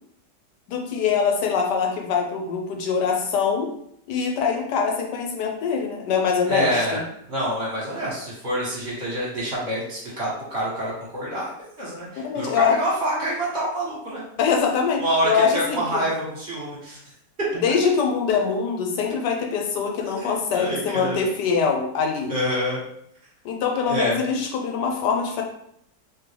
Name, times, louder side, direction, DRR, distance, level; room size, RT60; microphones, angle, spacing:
voice 1, 0.7-3.7 4.1-7.0 12.2-12.8 14.4-16.0 17.5-22.3 23.4-25.4, left 6 dB, 80° left, 2 dB, 1.4 m, -23 dB
voice 2, 6.5-7.0 7.3-14.2 15.0-17.0 20.2-21.2 22.3-22.8 23.9-24.2, equal, 40° right, -6 dB, 1.6 m, -27 dB
3.7 x 3.2 x 3.3 m, 0.72 s
omnidirectional pair, 1.8 m